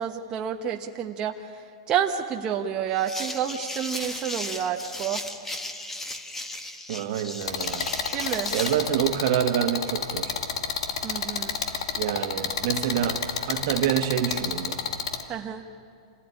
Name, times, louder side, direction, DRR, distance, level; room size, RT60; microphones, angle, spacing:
voice 1, 0.0-5.2 8.1-8.5 11.0-11.6 15.3-15.6, right 8 dB, 30° right, 2 dB, 1.2 m, -29 dB
sound 1, 3.0-8.9, left 1 dB, 10° left, 1.6 m, -36 dB
voice 2, 6.9-7.9 8.5-10.3 12.0-14.8, right 10 dB, 60° right, 8 dB, 1.6 m, -27 dB
sound 2, 7.4-15.2, left 6 dB, 80° left, 1.9 m, -30 dB
27.0 x 16.0 x 10.0 m, 2.4 s
hypercardioid pair, 135°, 3 cm